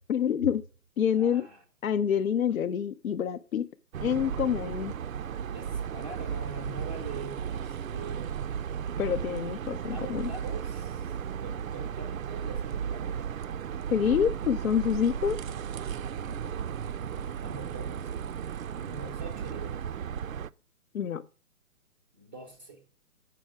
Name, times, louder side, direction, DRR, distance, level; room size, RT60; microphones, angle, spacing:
voice 1, 0.1-0.6 1.0-1.5 1.8-3.7 4.0-4.9 9.0-10.3 13.9-15.4 20.9-21.3, left 8 dB, 70° left, 0.6 m, -27 dB
voice 2, 1.2-1.6 5.5-8.4 9.9-13.3 16.0-18.1 18.5-19.8 22.1-22.8, right 2 dB, 10° right, 0.5 m, -45 dB
sound 1, 3.9-20.5, right 8 dB, 70° right, 0.5 m, -35 dB
7.7 x 5.8 x 6.0 m
figure-of-eight pair, 135°, 44 cm